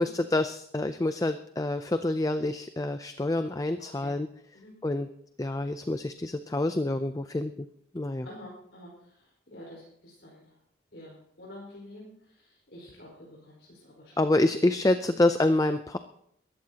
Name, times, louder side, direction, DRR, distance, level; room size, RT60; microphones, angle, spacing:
voice 1, 0.0-4.3 4.8-5.1 5.4-7.5 7.9-8.3 14.2-16.0, left 2 dB, 20° left, 9 dB, 0.4 m, -27 dB
voice 2, 8.2-8.9 9.5-10.5 10.9-12.1 12.7-14.1 15.1-15.2, left 1 dB, 65° left, -4 dB, 4.8 m, -47 dB
22.0 x 13.5 x 2.9 m, 0.71 s
head